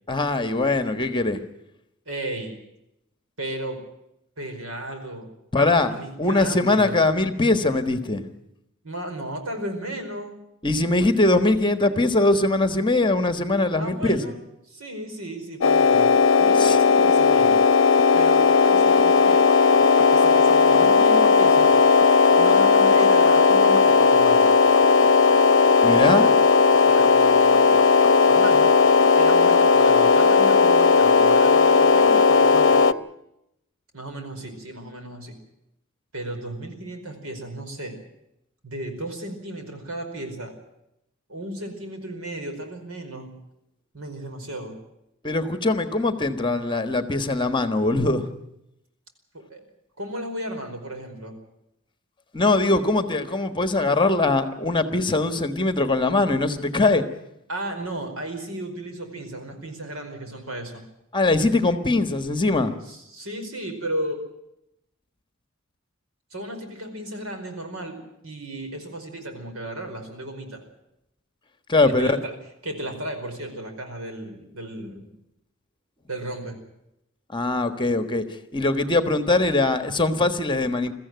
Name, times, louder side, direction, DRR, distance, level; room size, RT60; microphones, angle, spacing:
voice 1, 0.1-1.4 5.5-8.2 10.6-14.2 16.6-16.8 25.8-26.3 45.2-48.3 52.3-57.0 61.1-62.7 71.7-72.2 77.3-78.2 78.5-80.9, left 2 dB, 25° left, 9 dB, 1.4 m, -21 dB
voice 2, 2.0-2.5 3.4-3.8 4.4-5.3 5.5-7.0 8.8-10.3 13.8-14.4 14.7-16.1 16.4-17.6 18.1-19.4 20.0-21.8 22.4-24.5 26.7-28.8 29.1-33.0 33.9-35.3 36.1-37.9 38.6-40.5 41.3-43.3 43.9-44.7 49.3-49.6 50.0-51.3 57.5-60.8 62.8-64.2 66.3-70.6 71.8-72.3 72.6-75.1 76.1-76.6, right 1 dB, 80° right, 5 dB, 5.0 m, -34 dB
sound 1, 15.6-32.9, left 5 dB, 65° left, 0.8 m, -16 dB
22.5 x 14.5 x 9.4 m, 0.83 s
head